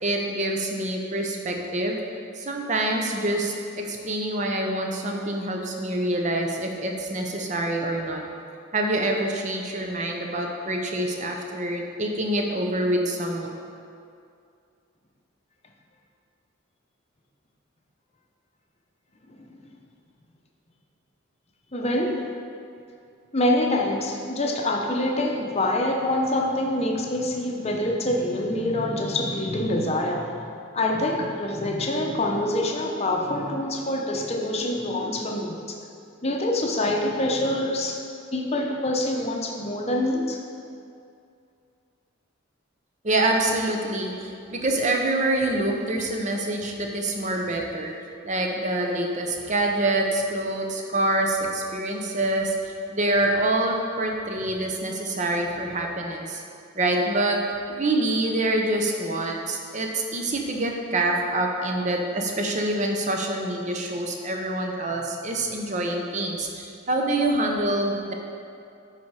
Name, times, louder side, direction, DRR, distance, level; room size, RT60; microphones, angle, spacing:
voice 1, 0.0-2.0 2.4-8.2 8.7-13.5 43.0-47.9 48.2-56.4 56.7-68.1, right 1 dB, 35° right, 1 dB, 0.8 m, -26 dB
voice 2, 21.7-22.2 23.3-30.4 30.7-35.8 36.2-38.0 38.3-40.4, left 1 dB, 30° left, 1 dB, 0.8 m, -25 dB
9.9 x 4.2 x 4.7 m, 2.4 s
head